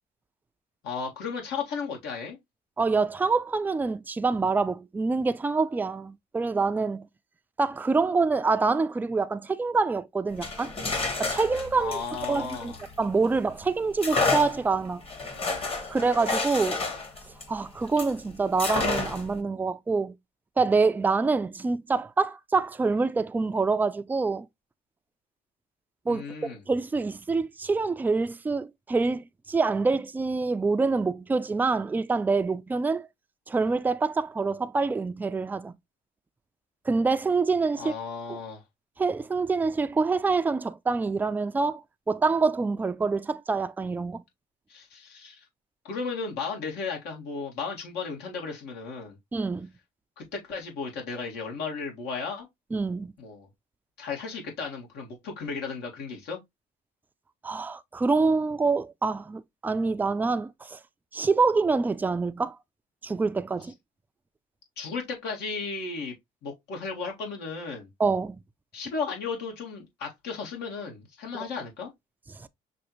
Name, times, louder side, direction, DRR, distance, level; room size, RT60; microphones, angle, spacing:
voice 1, 0.8-2.4 11.8-12.8 26.1-26.6 37.8-38.6 44.7-45.5 45.8-49.2 50.2-52.5 53.2-53.5 54.0-56.4 64.8-66.1 66.4-67.9 68.7-71.9, left 5 dB, 80° left, 1.9 m, -35 dB
voice 2, 2.8-7.1 7.6-10.7 11.2-12.0 12.3-15.0 15.9-16.8 17.5-20.1 20.6-24.5 26.1-26.2 26.7-33.1 33.5-35.7 36.9-37.9 38.3-38.4 39.0-41.8 42.1-44.2 49.3-49.7 52.7-53.1 57.4-60.8 61.1-62.6 63.0-63.7 68.0-68.4 72.4-72.5, right 4 dB, 10° right, 0.3 m, -26 dB
sound 1, 10.3-13.3 14.0-18.2 18.6-19.4, left 3 dB, 35° left, 1.3 m, -30 dB
6.0 x 2.6 x 2.9 m
cardioid pair, 110°, 17 cm